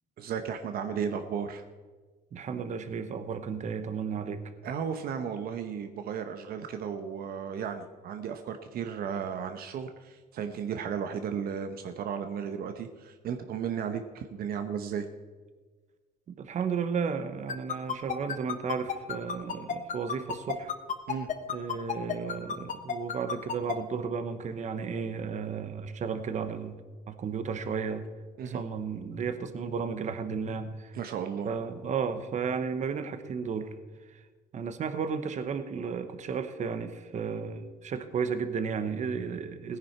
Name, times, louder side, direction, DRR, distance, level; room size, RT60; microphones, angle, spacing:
voice 1, 0.2-1.6 4.6-15.1 21.1-21.3 28.4-28.6 30.9-31.5, right 7 dB, 65° right, 7 dB, 0.9 m, -34 dB
voice 2, 2.3-4.4 16.4-20.7 21.5-26.8 27.1-28.1 28.5-31.0 31.4-33.7 34.1-34.2 34.5-39.8, right 6 dB, 45° right, 10 dB, 1.1 m, -33 dB
sound 1, 17.5-23.7, left 7 dB, 45° left, 1.3 m, -31 dB
17.0 x 10.0 x 4.5 m, 1.4 s
cardioid pair, 110°, 17 cm